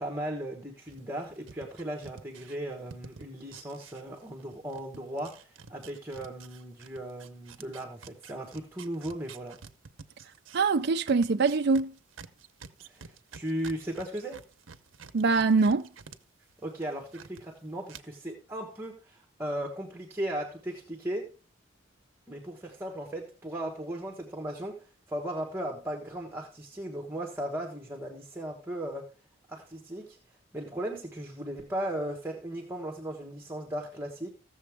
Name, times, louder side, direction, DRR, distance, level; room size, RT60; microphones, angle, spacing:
voice 1, 0.0-9.6 12.8-14.4 16.6-21.3 22.3-29.1 29.5-30.2 30.5-34.3, right 1 dB, 10° right, 1.3 m, -37 dB
sound 1, 0.9-4.4 4.7-16.2 16.5-17.4 17.9-18.0, right 5 dB, 85° right, 0.8 m, -49 dB
voice 2, 10.5-11.9 15.1-15.8, right 4 dB, 55° right, 0.5 m, -23 dB
15.0 x 7.0 x 3.5 m
head